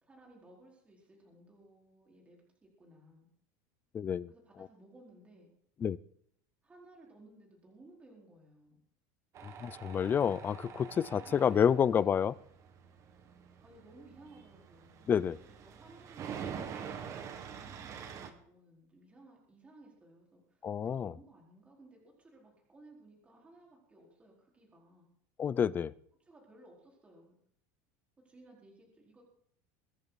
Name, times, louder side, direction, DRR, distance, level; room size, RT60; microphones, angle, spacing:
voice 1, 0.0-3.3 4.3-5.5 6.6-8.8 11.2-12.3 13.6-16.9 17.5-25.1 26.2-27.3 28.2-29.2, right 2 dB, 15° right, -2 dB, 4.7 m, -59 dB
voice 2, 3.9-4.3 5.8-6.0 9.4-12.3 15.1-15.4 20.6-21.1 25.4-25.9, left 8 dB, 20° left, 19 dB, 0.5 m, -29 dB
Tools, 9.4-18.3, right 7 dB, 35° right, 1.8 m, -46 dB
23.0 x 10.5 x 4.1 m, 0.64 s
supercardioid pair, 150°, 9 cm